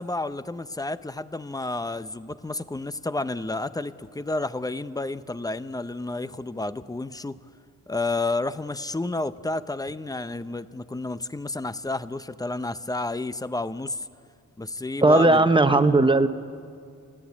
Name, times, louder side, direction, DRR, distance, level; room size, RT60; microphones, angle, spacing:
voice 1, 0.0-7.4 7.9-14.1 14.6-15.4, left 2 dB, 10° left, 13 dB, 0.6 m, -31 dB
voice 2, 15.0-16.3, right 2 dB, 15° right, 9 dB, 1.0 m, -17 dB
30.0 x 11.0 x 8.5 m, 2.3 s
cardioid pair, 80°, 31 cm